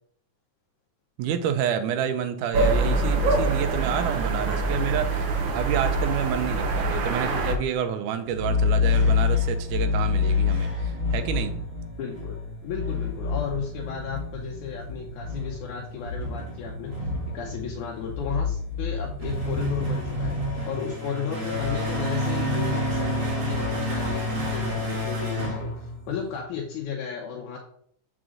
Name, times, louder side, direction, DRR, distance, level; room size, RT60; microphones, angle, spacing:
voice 1, 1.2-11.6, right 8 dB, 90° right, 9 dB, 2.2 m, -29 dB
sound 1, 2.5-7.5, right 3 dB, 55° right, 1.4 m, -24 dB
sound 2, 8.3-26.4, left 3 dB, 40° right, 2.7 m, -27 dB
voice 2, 12.0-12.4 12.6-17.0 17.3-20.4 20.6-27.6, left 7 dB, 80° left, 0 dB, 2.3 m, -34 dB
7.6 x 6.0 x 3.8 m, 0.63 s
omnidirectional pair, 3.6 m